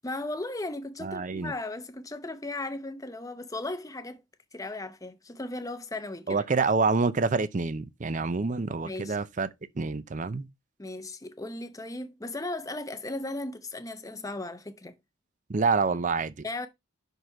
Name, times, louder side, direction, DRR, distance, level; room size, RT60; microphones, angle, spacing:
voice 1, 0.0-4.2 4.5-6.4 8.8-9.2 10.8-15.0 16.4-16.7, left 2 dB, 15° left, 0.7 m, -36 dB
voice 2, 1.0-1.5 6.3-9.5 9.8-10.5 15.5-16.3, right 4 dB, 40° right, 0.5 m, -27 dB
5.9 x 5.4 x 4.7 m
head